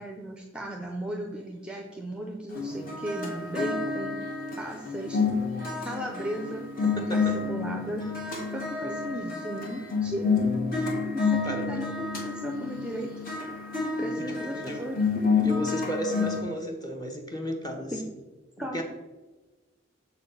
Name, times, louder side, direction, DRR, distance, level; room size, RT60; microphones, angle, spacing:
voice 1, 0.0-4.2 4.6-5.2 5.8-6.7 7.1-8.0 8.5-10.3 11.1-13.1 14.0-15.0 17.9-18.0 18.6-18.8, equal, 5° right, 1 dB, 0.6 m, -36 dB
sound 1, 2.5-16.4, left 4 dB, 45° left, 1.6 m, -29 dB
voice 2, 6.8-7.4 8.8-8.9 11.4-11.8 14.0-14.9 15.4-17.9 18.6-18.8, equal, 20° left, 2 dB, 1.1 m, -34 dB
6.9 x 4.2 x 5.5 m, 1.2 s
head